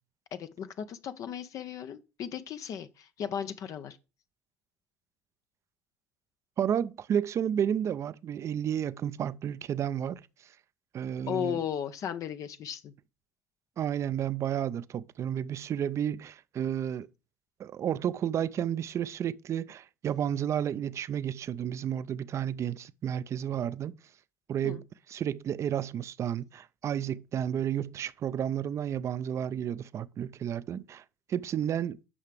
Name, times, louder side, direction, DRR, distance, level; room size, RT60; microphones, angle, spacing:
voice 1, 0.3-4.0 11.3-12.9 24.6-24.8, left 9 dB, 50° left, 0.6 m, -36 dB
voice 2, 6.6-10.2 10.9-11.6 13.8-17.1 17.6-23.9 24.5-31.0 31.3-32.0, right 9 dB, 40° right, 0.4 m, -31 dB
9.7 x 5.7 x 3.3 m
hypercardioid pair, 65°, 7 cm